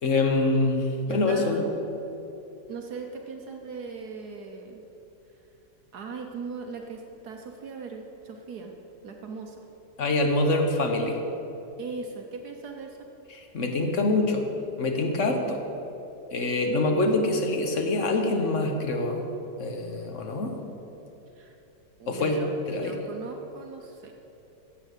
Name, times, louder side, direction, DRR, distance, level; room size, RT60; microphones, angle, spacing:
voice 1, 0.0-1.6 10.0-11.2 13.3-14.5 14.8-15.6 16.3-19.3 19.6-20.6 22.1-22.4 22.7-22.9, left 2 dB, 45° left, 3 dB, 1.4 m, -25 dB
voice 2, 1.0-1.7 2.7-4.8 5.9-8.7 9.0-9.6 11.8-13.0 21.4-21.5 22.0-24.1, right 4 dB, 65° right, 3 dB, 1.4 m, -39 dB
10.5 x 7.7 x 8.2 m, 3.0 s
omnidirectional pair, 1.9 m